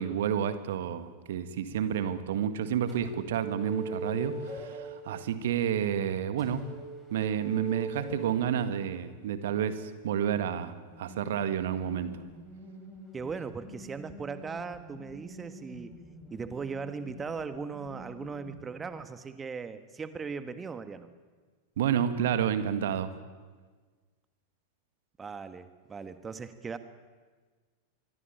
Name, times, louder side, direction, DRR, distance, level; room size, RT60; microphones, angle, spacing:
voice 1, 0.0-6.6 7.1-12.2 21.8-23.1, right 9 dB, 55° right, 11 dB, 1.8 m, -30 dB
sound 1, 1.9-2.1 2.9-5.1 6.4-8.5 10.9-18.7, right 2 dB, 5° left, 7.0 m, -43 dB
voice 2, 13.1-16.0 16.3-21.1 25.2-26.8, right 5 dB, 15° right, 11 dB, 1.5 m, -38 dB
25.5 x 23.0 x 9.0 m, 1.5 s
figure-of-eight pair, 90°, 0 cm